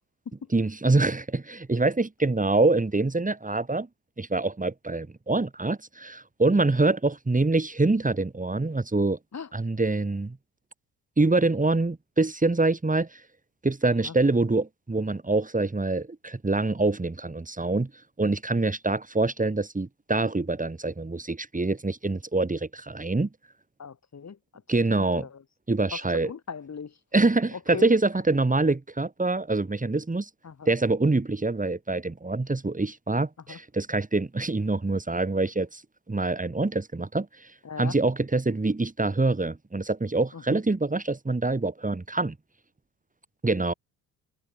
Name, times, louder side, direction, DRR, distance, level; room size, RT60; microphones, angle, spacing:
voice 1, 0.5-3.9 4.2-9.2 9.5-10.4 11.2-13.2 13.6-17.9 18.2-23.3 24.7-25.3 25.7-26.3 27.1-30.3 30.6-35.8 36.1-37.5 37.8-42.4 43.4-43.7, right 2 dB, 15° right, 6.6 m, -25 dB
voice 2, 23.8-24.4 25.0-25.4 25.9-27.0 27.5-27.9 30.4-30.7 33.5-33.6 37.6-37.9 40.3-40.6, left 6 dB, 35° left, 5.4 m, -39 dB
figure-of-eight pair, 55°, 48 cm